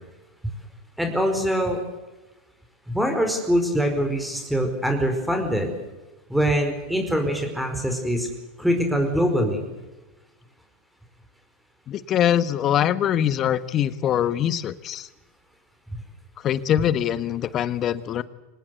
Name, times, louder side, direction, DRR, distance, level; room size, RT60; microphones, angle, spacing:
voice 1, 1.0-1.8 2.9-5.7 6.3-8.3 8.6-9.7 15.9-16.0, equal, ahead, 4 dB, 4.8 m, -23 dB
voice 2, 11.9-15.1 16.4-18.2, left 10 dB, 40° left, 15 dB, 1.4 m, -23 dB
25.0 x 19.0 x 8.2 m, 1.1 s
hypercardioid pair, 90°, 0 cm